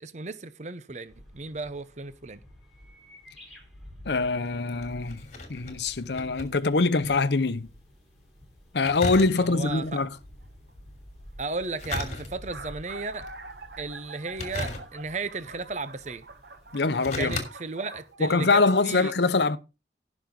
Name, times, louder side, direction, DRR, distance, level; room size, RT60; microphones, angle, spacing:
voice 1, 0.0-2.4 9.3-10.0 11.4-13.3 13.8-16.2 17.1-19.1, right 3 dB, 40° right, 0.7 m, -35 dB
sound 1, 1.1-16.7, equal, ahead, 4.2 m, -50 dB
voice 2, 4.1-7.7 8.7-10.2 16.7-17.4 18.2-19.6, left 3 dB, 70° left, 0.8 m, -24 dB
sound 2, 4.4-7.3 7.6-7.7 8.8-9.8 11.6-12.7 13.2-13.6 14.3-15.3 16.1-16.2 16.7-17.5 17.9-18.0, left 2 dB, 40° left, 2.9 m, -36 dB
sound 3, 10.4-10.7 11.5-11.6 11.8-11.9 12.3-18.6, right 3 dB, 65° right, 1.1 m, -46 dB
17.5 x 6.1 x 3.7 m
head